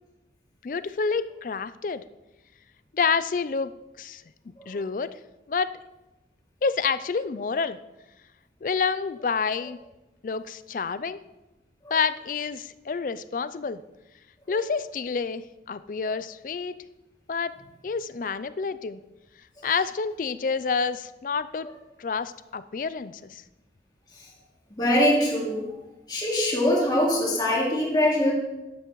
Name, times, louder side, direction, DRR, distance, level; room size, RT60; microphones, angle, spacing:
voice 1, 0.6-2.0 2.9-3.7 4.0-4.2 4.7-5.1 5.5-5.7 6.6-7.8 8.6-9.8 10.2-11.2 11.9-13.8 14.5-16.7 17.3-17.5 17.8-19.0 19.6-21.7 22.0-23.4, left 5 dB, 50° left, 14 dB, 0.4 m, -28 dB
voice 2, 24.7-25.6 26.1-28.3, left 1 dB, 25° left, -4 dB, 2.5 m, -23 dB
12.5 x 11.0 x 3.1 m, 1.0 s
head